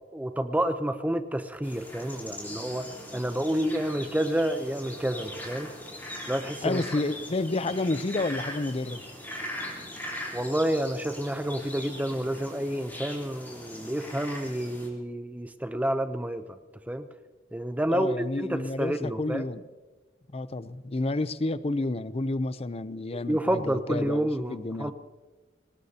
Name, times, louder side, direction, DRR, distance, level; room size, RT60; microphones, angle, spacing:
voice 1, 0.1-2.9 3.1-5.7 6.3-6.8 10.3-16.6 16.9-17.1 17.5-19.4 23.1-24.9, right 1 dB, 10° right, 9 dB, 0.6 m, -29 dB
sound 1, 1.6-14.9, left 1 dB, 10° left, 3.8 m, -40 dB
voice 2, 6.6-9.0 17.9-19.6 20.3-24.9, left 2 dB, 35° left, 14 dB, 0.6 m, -30 dB
25.0 x 19.5 x 2.9 m, 1.2 s
head